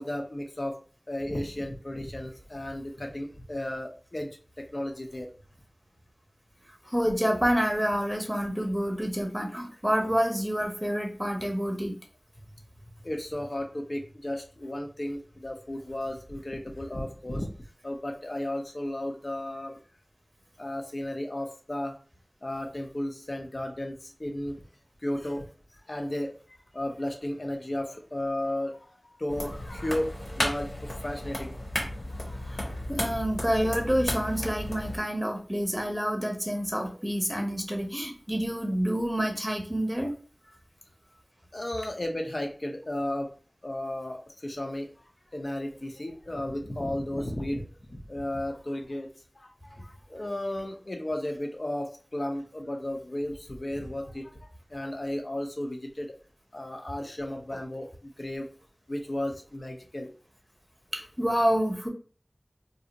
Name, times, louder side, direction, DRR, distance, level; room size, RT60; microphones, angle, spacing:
voice 1, 0.0-5.3 13.0-17.5 17.8-19.8 20.6-22.0 22.4-24.6 25.0-25.4 25.9-31.5 41.5-43.3 43.6-44.9 45.3-49.1 49.3-56.2 56.5-58.5 58.9-60.1, left 1 dB, 55° left, 2 dB, 0.7 m, -34 dB
voice 2, 6.8-11.9 32.5-40.1 50.1-50.2 60.9-61.9, equal, 5° right, 2 dB, 0.8 m, -28 dB
sound 1, 29.3-35.0, left 1 dB, 80° left, 1.3 m, -34 dB
2.6 x 2.0 x 4.0 m, 0.38 s
wide cardioid pair, 45°, 0 cm